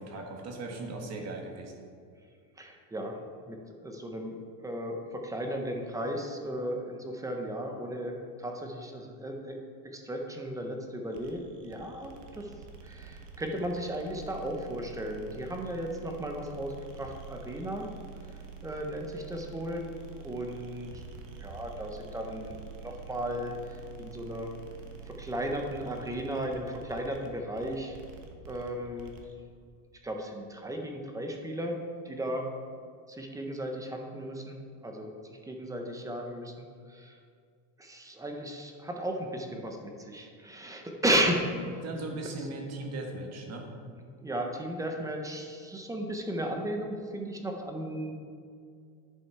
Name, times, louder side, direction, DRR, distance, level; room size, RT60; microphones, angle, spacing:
voice 1, 0.0-1.8 41.8-43.7, right 2 dB, 35° right, 2 dB, 1.3 m, -38 dB
voice 2, 2.6-3.2 3.5-4.4 4.6-9.6 9.8-12.5 12.8-17.9 18.6-21.0 21.4-22.6 22.8-24.5 25.1-28.0 28.5-29.1 30.0-32.5 33.1-37.2 37.8-41.5 42.4-42.5 44.2-48.1, right 1 dB, 10° right, 3 dB, 0.4 m, -35 dB
sound 1, 11.1-29.3, right 5 dB, 70° right, 1.4 m, -47 dB
10.5 x 5.4 x 4.5 m, 2.2 s
cardioid pair, 155°, 47 cm